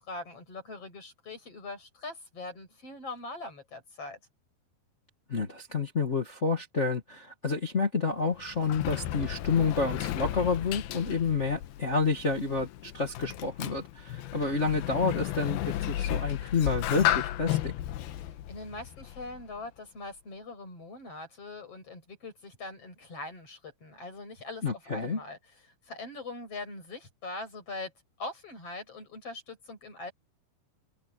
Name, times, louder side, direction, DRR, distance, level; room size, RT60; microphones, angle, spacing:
voice 1, 0.0-4.2 18.2-24.7 24.9-25.4 25.9-27.9 28.2-30.1, left 2 dB, 40° left, 8.6 m, -42 dB
voice 2, 5.3-17.7 24.6-25.2, left 4 dB, 60° left, 0.7 m, -29 dB
Sliding door, 8.1-19.6, left 13 dB, 90° left, 2.8 m, -34 dB
omnidirectional pair, 4.2 m